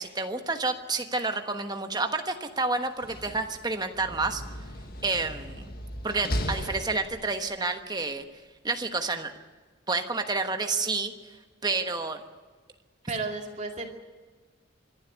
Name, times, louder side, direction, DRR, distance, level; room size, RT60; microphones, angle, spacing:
voice 1, 0.0-4.4 5.0-5.7 6.0-8.2 8.6-9.3 9.9-11.1 11.6-12.2, right 3 dB, 20° right, 6 dB, 1.2 m, -29 dB
Slam, 2.8-7.6, equal, 50° left, 1.7 m, -36 dB
voice 2, 13.1-13.9, right 3 dB, 35° right, 2 dB, 2.5 m, -33 dB
26.0 x 11.5 x 9.7 m, 1.4 s
head